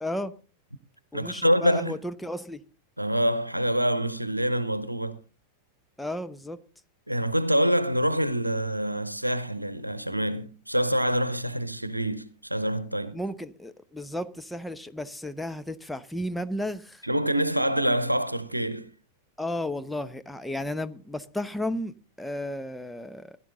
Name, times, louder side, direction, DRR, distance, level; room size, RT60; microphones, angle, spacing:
voice 1, 0.0-0.3 1.1-2.6 6.0-6.6 13.1-17.0 19.4-23.4, left 1 dB, 5° left, 0.8 m, -33 dB
voice 2, 1.1-2.0 3.0-5.2 7.1-13.2 17.0-18.9, equal, 85° right, 0.8 m, -26 dB
16.5 x 11.0 x 3.8 m
figure-of-eight pair, 90°, 0 cm